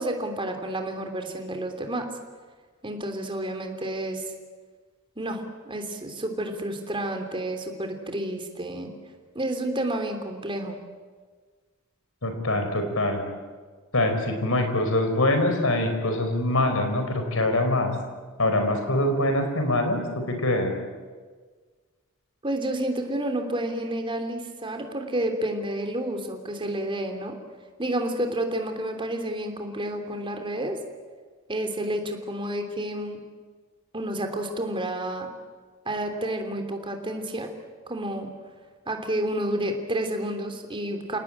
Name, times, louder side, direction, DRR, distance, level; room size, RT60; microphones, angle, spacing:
voice 1, 0.0-2.1 2.8-4.2 5.2-8.9 9.3-10.8 22.4-27.4 27.8-30.8 31.5-33.2 33.9-35.3 35.8-37.5 37.9-38.3 38.9-41.2, right 1 dB, 25° right, 5 dB, 3.2 m, -30 dB
voice 2, 12.2-13.2 13.9-17.9 18.4-20.7, left 1 dB, 70° left, 6 dB, 5.0 m, -24 dB
29.0 x 19.0 x 8.9 m, 1.5 s
head